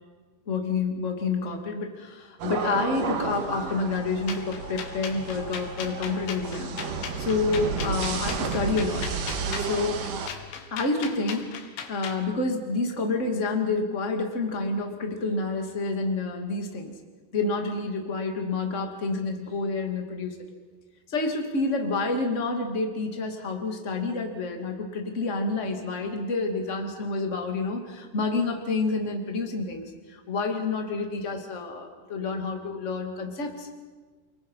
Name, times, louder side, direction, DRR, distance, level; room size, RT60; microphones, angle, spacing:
voice 1, 0.5-6.8 7.2-9.1 9.5-10.0 10.7-16.9 17.3-20.4 21.1-33.7, left 3 dB, 25° left, 3 dB, 1.8 m, -29 dB
sound 1, 2.4-10.3, right 5 dB, 60° right, 2.8 m, -32 dB
sound 2, 4.3-12.2, left 7 dB, 90° left, 4.0 m, -38 dB
29.0 x 21.5 x 5.7 m, 1.4 s
omnidirectional pair, 5.1 m